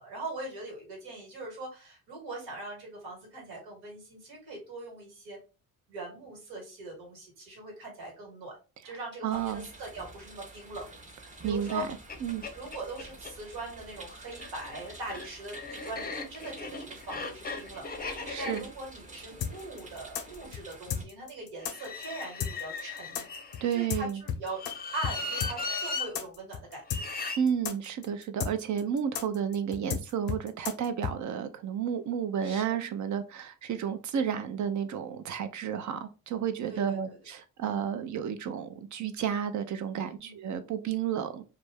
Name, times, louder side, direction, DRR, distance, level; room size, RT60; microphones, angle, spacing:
voice 1, 0.0-5.4 5.9-8.5 8.8-10.9 11.4-11.9 12.5-23.2 23.7-24.6 24.9-27.1 32.4-32.7 36.7-37.2 40.0-40.4, right 2 dB, 80° right, 1.5 m, -41 dB
voice 2, 9.2-9.7 11.4-11.9 12.2-12.4 18.3-18.6 23.6-24.2 27.4-41.4, right 8 dB, 50° right, 0.6 m, -31 dB
sound 1, 9.3-21.0, right 2 dB, 20° right, 0.8 m, -49 dB
sound 2, 11.7-11.8 12.1-12.2 12.4-13.3 14.3-20.4 21.6-23.9 24.5-26.1 26.9-27.4, left 3 dB, 25° left, 0.6 m, -38 dB
sound 3, 19.4-24.7 25.0-25.1 25.4-31.1, left 8 dB, 75° left, 0.6 m, -33 dB
2.5 x 2.2 x 3.3 m
supercardioid pair, 65°, 37 cm